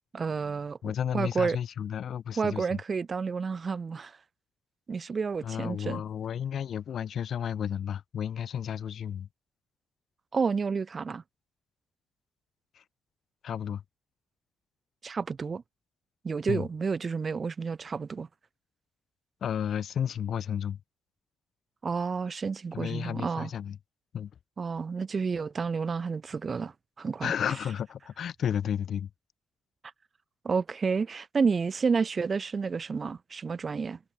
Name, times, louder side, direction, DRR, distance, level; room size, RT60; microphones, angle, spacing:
voice 1, 0.1-0.8 1.1-1.6 2.4-4.2 4.9-6.0 10.3-11.2 15.0-15.6 16.2-18.3 21.8-23.5 24.6-27.3 30.4-34.0, right 5 dB, 40° right, 0.8 m, -30 dB
voice 2, 0.8-2.8 5.4-9.3 12.7-12.8 13.4-13.8 16.5-16.7 19.4-20.8 22.7-23.8 24.1-24.3 27.2-29.1, left 9 dB, 55° left, 0.5 m, -32 dB
hypercardioid pair, 40°, 0 cm